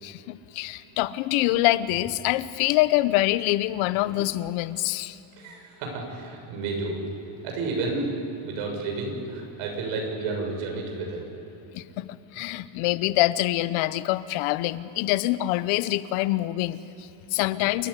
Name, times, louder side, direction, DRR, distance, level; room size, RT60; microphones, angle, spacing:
voice 1, 0.0-5.2 11.7-17.9, left 16 dB, 75° left, 15 dB, 1.0 m, -25 dB
voice 2, 5.4-7.0 7.4-8.1 8.5-11.2, right 3 dB, 85° right, 1 dB, 7.0 m, -31 dB
28.5 x 14.0 x 9.9 m, 2.9 s
cardioid pair, 175°, 50 cm